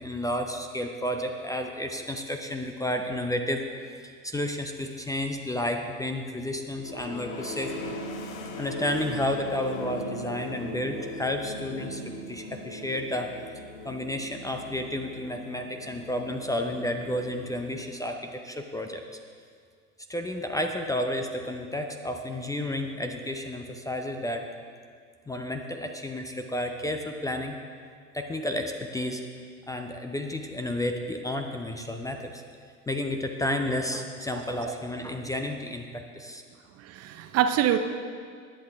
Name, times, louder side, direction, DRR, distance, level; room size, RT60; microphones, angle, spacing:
voice 1, 0.0-3.6 4.0-7.9 8.6-13.3 13.8-19.0 20.1-24.5 25.3-27.6 28.1-29.3 29.7-32.4 32.9-36.4, left 1 dB, 10° left, 5 dB, 0.6 m, -31 dB
sound 1, 6.7-18.3, left 1 dB, 65° left, 1.2 m, -39 dB
voice 2, 34.3-34.7 36.8-37.8, right 10 dB, 35° right, 8 dB, 0.7 m, -26 dB
20.0 x 8.3 x 3.5 m, 2.1 s
figure-of-eight pair, 85°, 45 cm